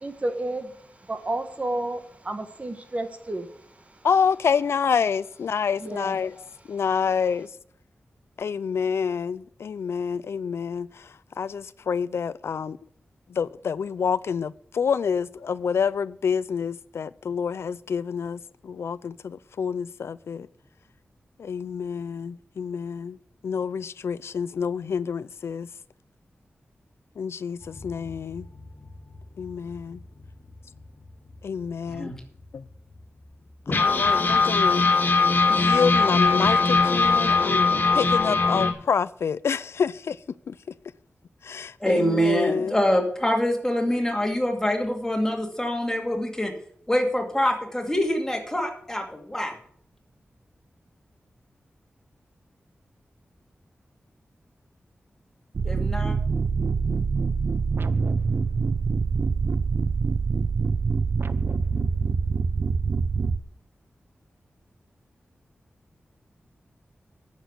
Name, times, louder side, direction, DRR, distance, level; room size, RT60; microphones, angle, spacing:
voice 1, 0.0-4.1 5.8-6.4 6.7-6.8, right 1 dB, 30° right, 1.2 m, -32 dB
voice 2, 4.0-6.3 6.7-7.5 8.4-11.1 11.4-12.8 13.3-20.5 21.4-23.2 23.4-25.7 27.2-28.5 29.4-30.0 31.4-32.1 32.5-32.6 33.7-34.9 35.5-37.7 37.9-40.2 40.5-40.6 41.4-42.7, left 6 dB, 85° left, 0.4 m, -27 dB
sound 1, 27.6-30.8 31.3-31.4 31.6-31.8 32.4-32.5 33.7-38.7, left 4 dB, 50° left, 1.9 m, -21 dB
voice 3, 41.8-46.5 46.9-49.5 55.6-56.1, equal, 10° left, 2.3 m, -25 dB
sound 2, 55.5-63.4, right 5 dB, 55° right, 0.5 m, -25 dB
10.0 x 7.1 x 7.9 m
wide cardioid pair, 110°, 4 cm